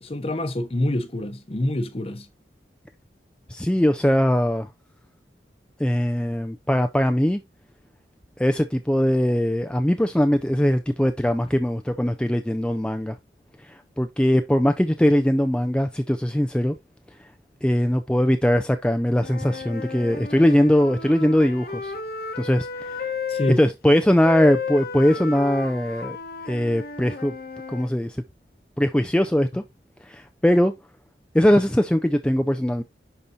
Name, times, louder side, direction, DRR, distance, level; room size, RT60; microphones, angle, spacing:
voice 1, 0.0-2.3 23.3-23.6, left 1 dB, 35° left, 0.8 m, -26 dB
voice 2, 3.5-4.7 5.8-7.4 8.4-13.1 14.0-16.8 17.6-21.9 22.4-23.0 23.6-26.2 26.5-27.3 27.7-28.2 28.8-29.6 30.0-30.7 31.3-32.8, equal, 5° left, 0.4 m, -21 dB
Wind instrument woodwind instrument, 19.1-23.6 24.2-27.9, left 5 dB, 55° left, 1.0 m, -33 dB
10.5 x 4.2 x 2.6 m
head